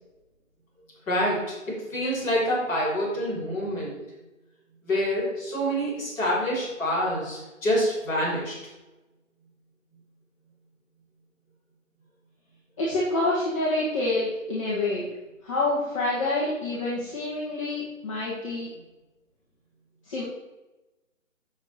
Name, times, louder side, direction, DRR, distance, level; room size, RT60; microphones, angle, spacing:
voice 1, 1.1-1.5 1.9-4.0 4.8-8.6, equal, 5° left, -14 dB, 3.7 m, -26 dB
voice 2, 12.8-15.1 15.4-18.7 20.0-20.2, left 2 dB, 25° left, -9 dB, 2.0 m, -27 dB
9.5 x 7.1 x 4.5 m, 1.1 s
hypercardioid pair, 170°, 40 cm